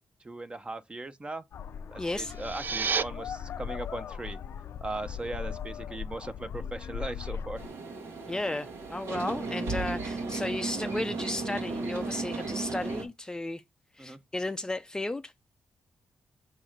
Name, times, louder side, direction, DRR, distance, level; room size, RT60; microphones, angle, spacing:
voice 1, 0.2-1.4 1.9-4.4 4.8-7.6 11.4-11.5 14.0-14.2, right 2 dB, 25° right, 0.7 m, -38 dB
sound 1, 1.5-7.7, left 7 dB, 70° left, 0.5 m, -39 dB
voice 2, 2.0-2.3 8.3-13.6 14.0-15.3, left 2 dB, 15° left, 0.4 m, -34 dB
sound 2, 2.2-3.0, right 5 dB, 50° right, 0.4 m, -30 dB
sound 3, 7.6-13.1, right 3 dB, 80° right, 1.5 m, -35 dB
6.3 x 3.0 x 5.0 m
cardioid pair, 85°, 4 cm